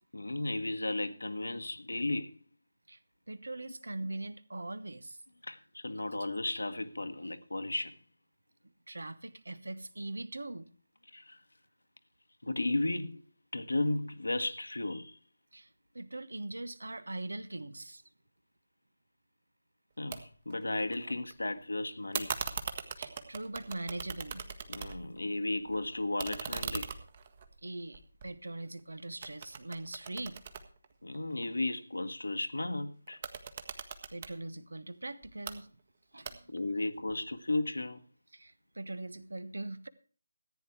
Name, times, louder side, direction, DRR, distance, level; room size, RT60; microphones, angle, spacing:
voice 1, 0.1-2.4 5.4-8.0 11.1-11.4 12.4-13.2 13.5-15.2 20.0-22.3 24.7-26.9 31.0-33.2 36.5-38.0, left 2 dB, 75° left, 1.3 m, -34 dB
voice 2, 3.3-5.2 8.9-10.7 15.5-15.7 15.9-18.0 23.0-24.4 27.6-30.4 33.7-35.8 36.1-36.5 38.3-39.9, right 2 dB, 75° right, 1.2 m, -41 dB
sound 1, 20.1-20.2 20.5-21.3 22.1-25.2 25.5-28.8 29.2-31.4 33.1-34.3 35.2-35.6 36.2-36.7, right 6 dB, 35° right, 1.4 m, -40 dB
14.5 x 9.5 x 4.6 m
figure-of-eight pair, 155°, 0 cm